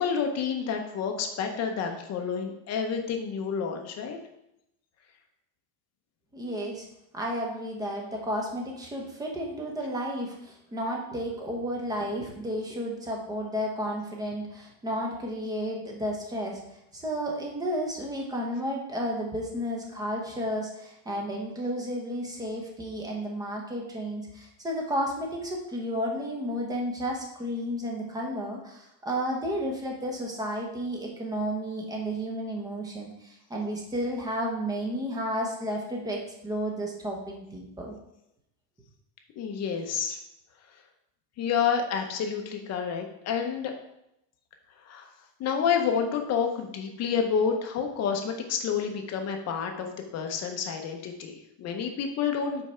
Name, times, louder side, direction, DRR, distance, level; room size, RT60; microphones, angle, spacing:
voice 1, 0.0-4.2 39.4-40.2 41.4-43.7 44.9-45.1 45.4-49.9 50.1-52.6, left 6 dB, 35° left, 4 dB, 0.7 m, -29 dB
voice 2, 6.3-6.9 7.1-16.6 16.9-37.9, equal, 10° right, 0 dB, 0.7 m, -32 dB
5.3 x 4.6 x 4.3 m, 0.83 s
cardioid pair, 170°, 47 cm